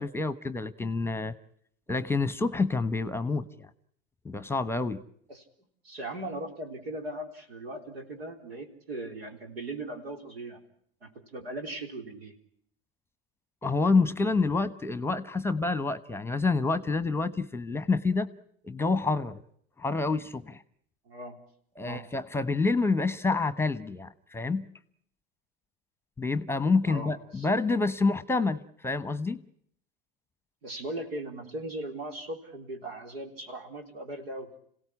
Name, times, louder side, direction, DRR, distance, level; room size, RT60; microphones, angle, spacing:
voice 1, 0.0-1.3 1.9-3.7 4.2-5.0 13.6-18.3 18.6-19.4 19.8-20.6 21.8-24.6 26.2-29.4, left 3 dB, 10° left, 15 dB, 1.0 m, -28 dB
voice 2, 5.8-10.6 11.0-12.3 21.1-21.4 21.8-22.1 26.9-27.5 30.6-34.5, right 1 dB, 90° right, 5 dB, 3.8 m, -38 dB
27.0 x 17.0 x 9.9 m, 0.68 s
hypercardioid pair, 100°, 29 cm